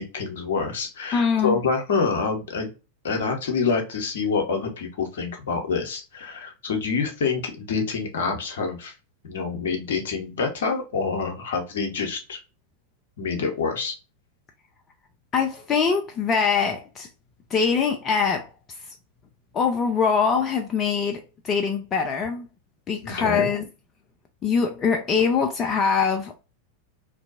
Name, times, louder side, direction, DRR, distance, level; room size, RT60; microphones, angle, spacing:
voice 1, 0.0-2.7 3.0-8.9 9.2-12.4 13.2-13.9 23.0-23.5, left 5 dB, 60° left, 0.7 m, -27 dB
voice 2, 1.1-1.6 15.3-17.1 17.5-18.5 19.5-22.4 22.9-23.7 24.4-26.3, left 6 dB, 25° left, 0.3 m, -23 dB
2.6 x 2.2 x 2.4 m
figure-of-eight pair, 90°, 0 cm